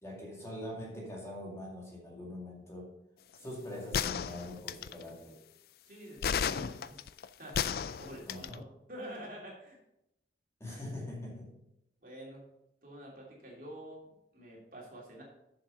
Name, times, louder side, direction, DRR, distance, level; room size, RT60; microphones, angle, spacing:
voice 1, 0.0-3.0 3.4-5.4 8.3-8.7 10.6-11.6, left 1 dB, 15° left, -3 dB, 2.1 m, -43 dB
sound 1, 3.9-5.0 6.2-8.5, left 7 dB, 55° left, 0.3 m, -33 dB
voice 2, 5.9-7.0 7.4-7.6 8.0-9.8 12.0-12.4 12.8-15.2, equal, 50° right, -3 dB, 2.9 m, -47 dB
7.5 x 7.1 x 5.5 m, 0.86 s
head